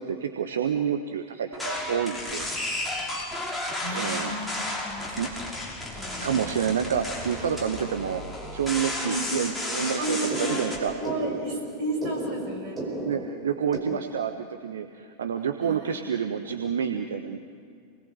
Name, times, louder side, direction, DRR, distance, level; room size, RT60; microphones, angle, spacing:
voice 1, 0.0-2.5 3.9-4.3 5.2-5.3 6.2-8.2 8.5-11.0 13.0-17.4, right 8 dB, 65° right, 7 dB, 1.2 m, -28 dB
sound 1, 1.5-10.8, left 1 dB, ahead, 5.8 m, -33 dB
voice 2, 3.8-4.5 4.8-5.3 5.9-6.6 9.0-9.6 10.0-12.8 13.9-14.0 15.7-15.8, right 1 dB, 40° right, 1 dB, 7.2 m, -33 dB
sound 2, 7.3-13.8, right 2 dB, 20° right, 5.1 m, -37 dB
28.0 x 20.5 x 7.9 m, 2.3 s
figure-of-eight pair, 90°, 0 cm